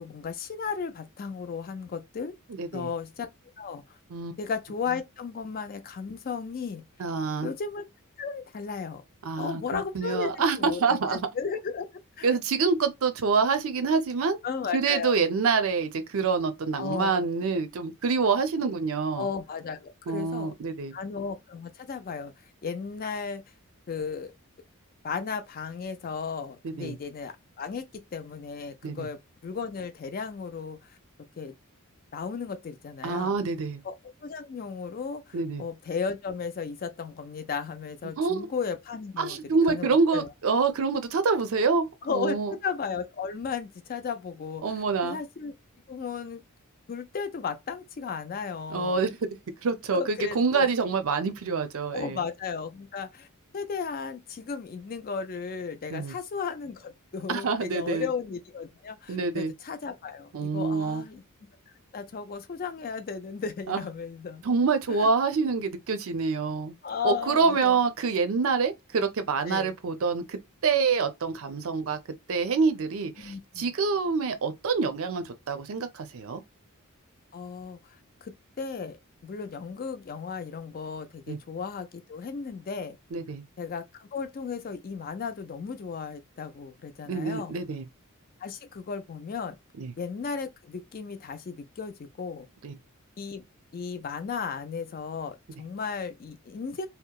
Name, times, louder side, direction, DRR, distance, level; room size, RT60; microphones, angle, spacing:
voice 1, 0.0-2.3 2.7-3.3 3.6-4.0 4.4-6.8 7.4-7.8 8.2-9.0 9.4-11.9 12.2-12.4 14.4-15.2 16.8-17.3 19.1-20.5 20.9-22.3 22.6-23.4 23.9-24.3 25.0-31.0 31.4-31.5 32.1-33.4 33.8-33.9 34.2-40.3 42.0-42.4 42.6-44.6 45.0-45.5 45.9-46.4 46.9-49.0 49.9-50.7 51.9-53.3 53.5-61.2 61.9-64.4 64.9-65.1 66.8-67.8 69.5-69.7 73.2-73.7 77.3-83.0 83.6-87.6 88.4-89.6 90.0-92.5 93.2-93.4 93.7-96.9, left 5 dB, 40° left, 0.4 m, -35 dB
voice 2, 2.5-2.9 4.1-4.4 7.0-7.5 9.2-11.2 12.2-14.4 14.7-19.3 20.1-20.9 26.6-27.0 28.8-29.1 33.0-33.8 35.3-35.6 38.2-38.5 39.2-42.5 44.6-45.2 48.7-49.3 49.6-52.2 55.9-56.1 57.3-58.1 59.1-59.5 60.3-61.0 63.7-63.8 64.4-66.7 67.0-72.0 72.3-76.4 81.3-81.4 83.1-83.4 87.1-87.9 89.8-89.9 92.6-92.7, right 4 dB, 65° right, 0.5 m, -26 dB
2.8 x 2.0 x 2.2 m
head